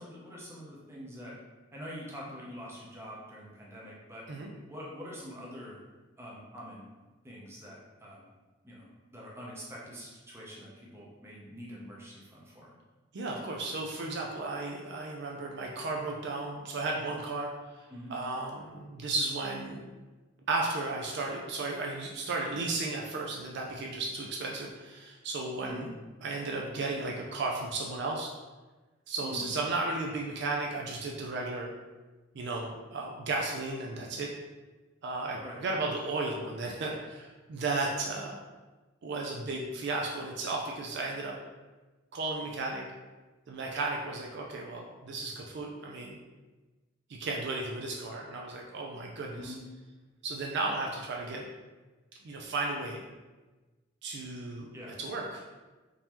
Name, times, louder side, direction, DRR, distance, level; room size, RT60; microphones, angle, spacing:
voice 1, 0.0-1.4 1.7-4.2 4.7-5.8 6.2-6.9 7.2-8.3 8.6-12.7 17.9-18.2 25.6-25.9 29.2-29.5 35.4-35.6 49.3-49.6 54.7-55.0, equal, 10° right, -5 dB, 0.7 m, -45 dB
voice 2, 13.1-19.9 20.5-25.9 26.2-28.3 29.1-31.7 32.3-34.3 35.0-38.4 39.0-41.4 42.1-42.8 43.5-46.2 47.1-49.5 50.2-51.5 52.2-53.0 54.0-54.7 55.0-55.4, right 3 dB, 55° right, 0 dB, 0.4 m, -34 dB
3.7 x 2.7 x 2.9 m, 1.2 s
head